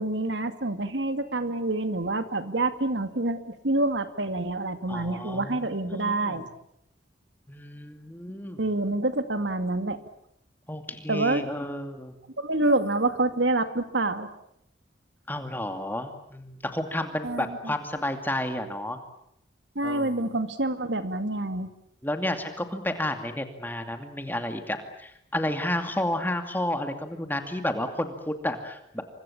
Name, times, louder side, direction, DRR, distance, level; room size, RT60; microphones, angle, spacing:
voice 1, 0.0-6.5 8.6-10.0 11.1-11.4 12.4-14.3 17.2-17.7 19.8-21.7, right 2 dB, 80° right, 9 dB, 2.3 m, -27 dB
voice 2, 4.9-6.5 7.5-8.7 10.7-12.2 15.3-19.0 19.8-20.3 22.0-29.0, left 1 dB, 10° left, 6 dB, 2.5 m, -31 dB
29.0 x 24.5 x 7.3 m, 0.75 s
head